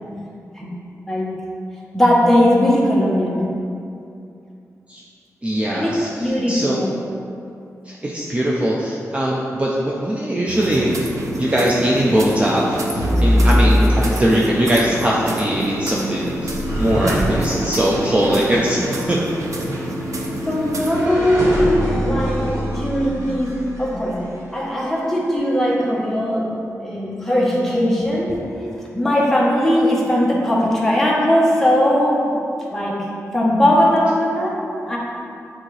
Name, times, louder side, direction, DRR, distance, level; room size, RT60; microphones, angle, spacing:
voice 1, 1.9-3.4 5.7-6.9 20.4-24.3 24.5-26.5 26.8-28.3 28.9-32.3 32.7-33.1 33.3-34.6 34.9-35.0, equal, 5° left, -5 dB, 1.1 m, -19 dB
voice 2, 5.4-6.8 7.9-10.9 11.4-19.2 19.7-19.8, right 1 dB, 20° right, -5 dB, 0.5 m, -21 dB
sound 1, 10.5-21.1, right 2 dB, 60° right, 0.7 m, -29 dB
Telephone, 10.9-23.1, left 3 dB, 65° left, 0.4 m, -34 dB
sound 2, 12.9-24.2, equal, 80° right, 1.2 m, -23 dB
8.9 x 3.7 x 3.3 m, 2.6 s
wide cardioid pair, 130°, 6 cm